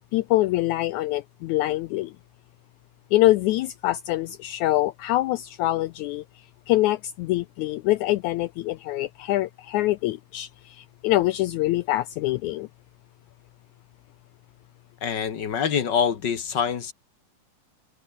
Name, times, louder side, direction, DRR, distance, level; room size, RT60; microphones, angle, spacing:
voice 1, 0.1-2.1 3.1-6.2 6.7-12.7, left 16 dB, 90° left, 1.7 m, -24 dB
voice 2, 15.0-16.9, left 7 dB, 45° left, 1.5 m, -25 dB
omnidirectional pair, 4.0 m